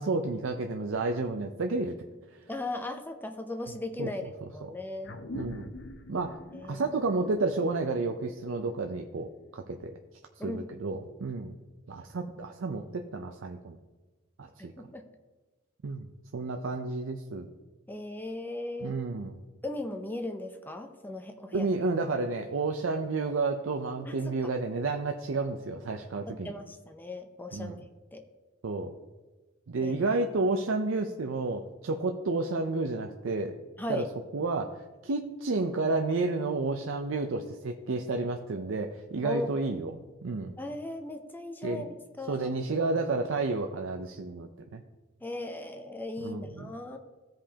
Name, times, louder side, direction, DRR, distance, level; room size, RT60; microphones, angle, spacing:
voice 1, 0.0-2.0 2.3-2.4 4.0-4.1 4.6-4.7 5.3-5.7 6.1-6.4 6.7-10.0 10.4-11.5 11.9-13.8 14.4-14.7 15.8-16.1 16.3-17.5 18.8-19.4 21.5-26.5 27.5-27.8 28.6-28.9 29.7-33.6 33.9-34.0 34.3-39.9 40.2-40.6 41.6-41.9 42.3-44.8 46.2-46.7, right 3 dB, 85° right, 4 dB, 0.5 m, -31 dB
voice 2, 2.5-4.2 4.5-5.2 6.5-6.9 10.4-10.7 14.8-15.0 17.9-19.0 19.6-21.7 24.1-24.4 26.3-27.7 28.1-28.2 29.8-29.9 33.8-34.1 39.2-39.5 40.6-41.9 42.2-42.5 45.2-47.0, left 2 dB, 10° left, 6 dB, 0.5 m, -37 dB
sound 1, 5.0-9.9, left 1 dB, 60° left, 0.6 m, -46 dB
15.0 x 5.1 x 2.8 m, 1.2 s
head